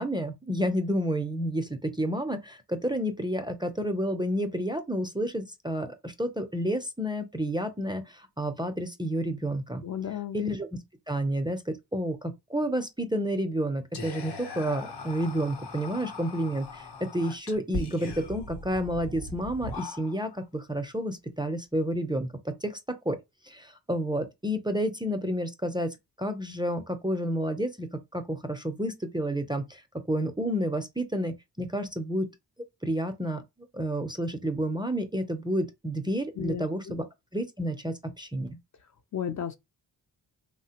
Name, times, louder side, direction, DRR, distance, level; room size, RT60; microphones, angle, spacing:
voice 1, 0.0-9.8 10.3-10.7 11.1-22.8 23.1-23.2 23.4-27.9 28.1-29.8 30.1-32.3 32.8-33.4 33.7-37.0 37.3-38.5, equal, 10° right, 0.5 m, -30 dB
voice 2, 9.8-10.4 36.4-37.0 39.1-39.6, left 9 dB, 45° left, 0.5 m, -34 dB
Whispering, 13.9-20.4, left 2 dB, 70° left, 0.9 m, -39 dB
3.2 x 2.1 x 2.8 m
cardioid pair, 85°, 41 cm